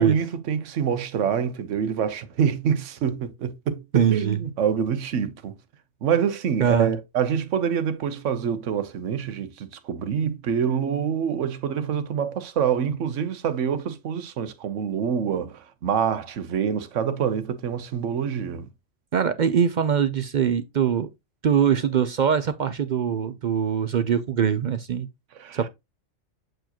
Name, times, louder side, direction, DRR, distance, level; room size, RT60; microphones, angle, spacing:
voice 1, 0.0-5.5 6.0-18.7 25.3-25.6, right 7 dB, 85° right, 1.1 m, -26 dB
voice 2, 3.9-4.4 6.6-6.9 19.1-21.1 21.4-25.1 25.5-25.7, right 8 dB, 60° right, 0.5 m, -22 dB
7.7 x 4.6 x 2.9 m
omnidirectional pair, 1.2 m